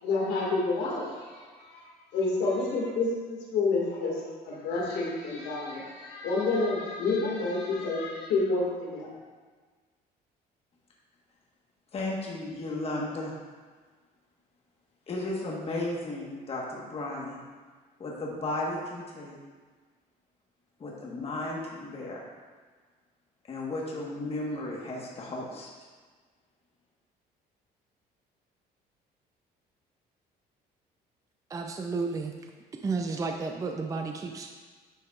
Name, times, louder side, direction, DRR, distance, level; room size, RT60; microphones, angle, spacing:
voice 1, 0.0-1.9 2.1-9.1, left 3 dB, 90° left, -3 dB, 2.0 m, -29 dB
voice 2, 11.9-13.4 15.1-17.4 18.0-19.4 20.8-22.2 23.5-25.7, left 2 dB, 35° left, -3 dB, 1.3 m, -34 dB
voice 3, 31.5-32.3 32.7-34.5, right 4 dB, 20° right, 3 dB, 0.4 m, -32 dB
10.0 x 5.9 x 2.4 m, 1.5 s
cardioid pair, 110°, 17 cm